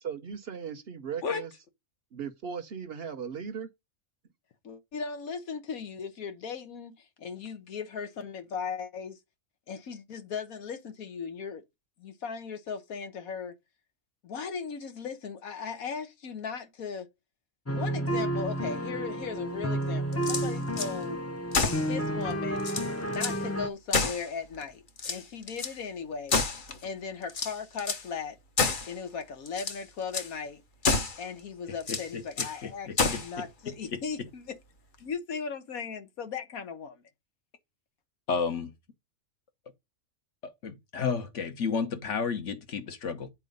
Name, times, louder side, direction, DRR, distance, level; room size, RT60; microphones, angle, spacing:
voice 1, 0.0-1.5 2.1-3.7, right 7 dB, 55° right, 0.9 m, -37 dB
voice 2, 4.6-9.2 9.7-11.6 12.0-13.5 14.2-17.1 17.7-21.2 21.9-22.7 23.1-26.4 26.8-28.4 28.8-30.6 31.2-34.6 35.0-37.0, left 6 dB, 90° left, 1.6 m, -37 dB
sound 1, 17.7-23.7, right 1 dB, 15° left, 0.5 m, -31 dB
sound 2, 20.1-20.9 21.5-21.9 22.3-22.4 22.6-23.4 23.9-24.6 25.0-25.8 26.3-26.9 27.3-28.1 28.6-28.9 29.5-29.8 30.1-30.3 30.8-31.2 31.8-32.6 33.0-33.3, left 4 dB, 40° left, 1.0 m, -29 dB
voice 3, 31.9-34.0 38.3-38.7 40.4-43.3, left 5 dB, 60° left, 1.4 m, -33 dB
8.3 x 4.5 x 5.3 m
omnidirectional pair, 1.4 m